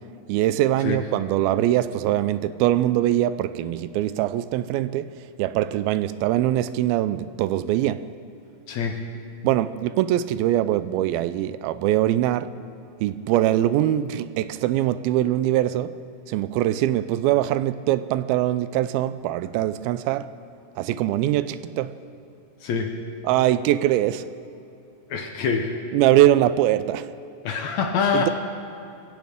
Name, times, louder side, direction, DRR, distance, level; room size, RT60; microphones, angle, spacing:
voice 1, 0.3-5.1 5.4-8.1 9.4-12.6 13.0-16.0 16.3-20.3 20.8-22.0 23.2-24.3 25.9-27.1 28.1-28.3, right 13 dB, 85° right, 2.4 m, -22 dB
voice 2, 8.7-9.0 22.6-23.0 25.1-25.7 27.4-28.3, left 6 dB, 75° left, 1.6 m, -25 dB
23.5 x 16.5 x 3.6 m
omnidirectional pair, 4.4 m